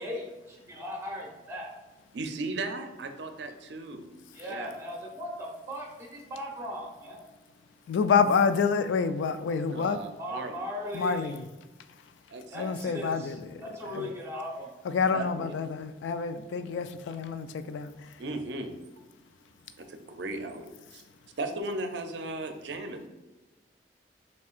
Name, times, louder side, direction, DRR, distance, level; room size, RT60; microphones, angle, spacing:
voice 1, 0.0-1.7 4.3-7.2 10.2-11.4 12.5-14.7, left 1 dB, 15° right, -1 dB, 0.9 m, -38 dB
voice 2, 2.1-4.1 4.5-4.7 9.7-10.6 12.3-12.7 13.9-14.1 15.1-15.5 18.2-18.7 19.8-21.0 21.4-23.1, right 2 dB, 70° right, 6 dB, 0.5 m, -36 dB
voice 3, 7.9-10.0 10.9-11.4 12.5-13.6 13.9-14.1 14.9-17.9, left 5 dB, 85° left, 11 dB, 0.3 m, -27 dB
5.4 x 3.3 x 2.4 m, 1.1 s
head